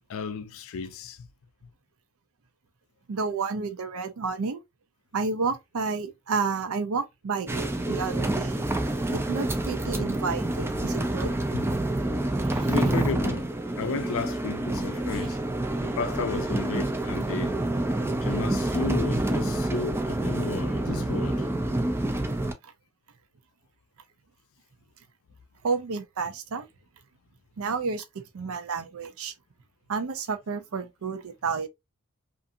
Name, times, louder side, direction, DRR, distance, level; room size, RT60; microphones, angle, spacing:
voice 1, 0.1-1.3 11.5-11.6 12.7-15.4 15.8-17.5 18.2-21.6, left 5 dB, 65° left, 0.4 m, -33 dB
voice 2, 3.1-4.6 5.1-8.6 9.1-11.3 12.4-12.7 15.1-15.3 22.6-22.7 25.6-26.7 27.6-28.1 28.3-29.3 29.9-31.7, right 4 dB, 70° right, 0.5 m, -31 dB
sound 1, 7.5-22.5, right 1 dB, 10° right, 0.3 m, -27 dB
2.6 x 2.5 x 2.5 m
head